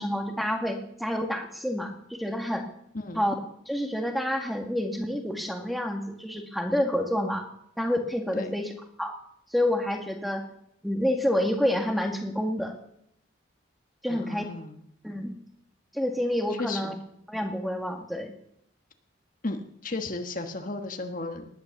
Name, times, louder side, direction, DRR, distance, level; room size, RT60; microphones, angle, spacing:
voice 1, 0.0-2.7 3.1-3.3 3.7-7.5 7.8-8.7 9.0-9.1 9.5-10.4 10.8-12.8 14.0-14.4 15.0-15.3 15.9-17.0 17.3-18.3, left 1 dB, ahead, 4 dB, 1.8 m, -28 dB
voice 2, 14.1-14.7 16.6-16.9 19.4-21.5, left 2 dB, 40° left, 6 dB, 1.4 m, -34 dB
19.5 x 10.5 x 6.9 m, 0.72 s
head